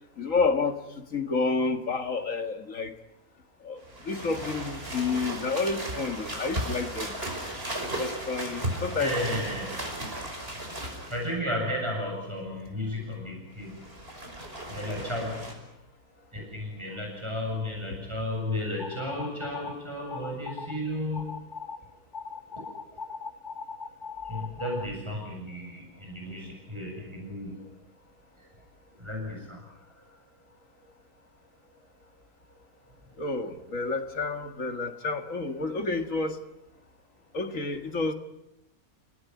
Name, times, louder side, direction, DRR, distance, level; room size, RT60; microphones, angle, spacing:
voice 1, 0.2-2.9 3.6-7.1 8.0-9.1 33.2-36.4 37.3-38.1, left 4 dB, 60° left, 2.3 m, -29 dB
sound 1, 3.8-11.3 13.6-15.5, right 1 dB, 40° right, 5.7 m, -35 dB
voice 2, 8.9-9.7 11.1-13.8 14.7-15.4 16.3-21.3 24.3-27.6 29.0-29.6, left 1 dB, 20° right, 7.4 m, -33 dB
sound 2, 18.8-19.7 20.1-20.8 21.1-21.8 22.1-24.9, left 5 dB, 35° left, 1.2 m, -39 dB
29.5 x 18.0 x 9.5 m
omnidirectional pair, 1.5 m